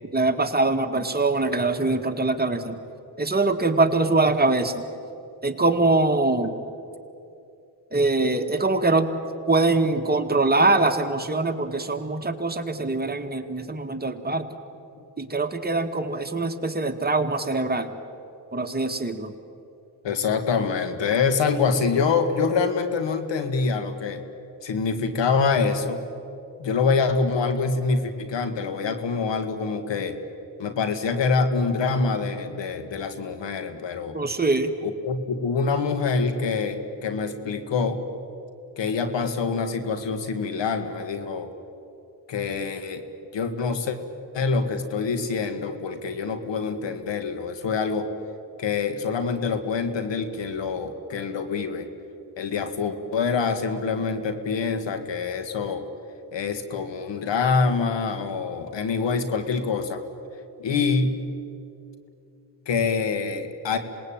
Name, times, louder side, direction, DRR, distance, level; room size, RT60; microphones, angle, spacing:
voice 1, 0.1-2.8 3.2-4.8 5.4-6.6 7.9-9.1 9.5-14.4 15.2-17.9 18.5-19.3 34.1-34.7, right 3 dB, 20° right, 5 dB, 2.1 m, -23 dB
voice 2, 20.0-24.2 24.6-26.0 26.6-30.2 30.6-34.2 34.8-38.0 38.8-41.5 42.3-43.0 43.3-44.0 44.3-48.1 48.6-51.9 52.4-55.9 56.3-60.0 60.6-61.2 62.7-63.8, left 4 dB, 70° left, 9 dB, 2.1 m, -25 dB
26.5 x 20.0 x 9.0 m, 2.7 s
cardioid pair, 65°, 45 cm